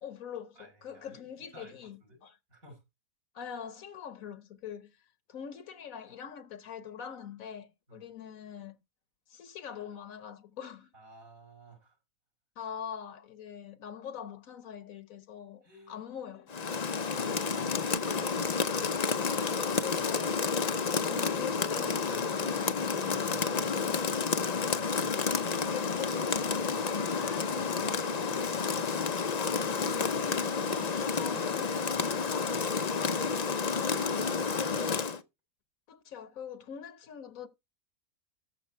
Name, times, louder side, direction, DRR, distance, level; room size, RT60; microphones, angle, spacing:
voice 1, 0.0-2.4 3.3-8.8 9.3-10.9 12.6-16.5 19.3-20.5 21.0-24.2 25.6-33.1 35.9-37.5, left 8 dB, 65° left, 1.4 m, -44 dB
voice 2, 0.6-2.2 2.5-2.8 7.9-8.1 10.9-12.0 15.6-16.0 17.1-18.5 23.1-24.0 24.6-25.6 31.1-31.4 34.1-35.1, right 1 dB, 65° right, 5.6 m, -54 dB
Rain, 16.5-35.2, left 5 dB, 40° left, 0.6 m, -30 dB
13.5 x 5.8 x 4.4 m
omnidirectional pair, 1.5 m